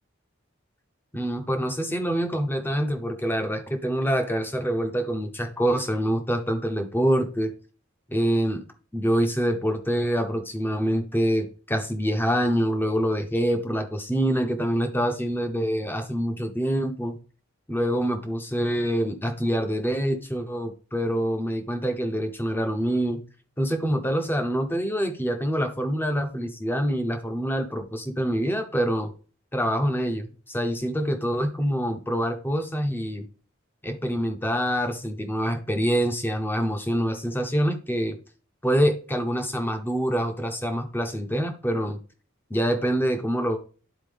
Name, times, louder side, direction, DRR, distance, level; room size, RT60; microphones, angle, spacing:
voice 1, 1.1-7.5 8.1-8.6 8.9-17.2 17.7-23.2 23.6-29.1 29.5-33.3 33.8-38.2 38.6-42.0 42.5-43.6, equal, 10° left, 6 dB, 0.8 m, -25 dB
11.0 x 4.3 x 3.5 m, 0.38 s
head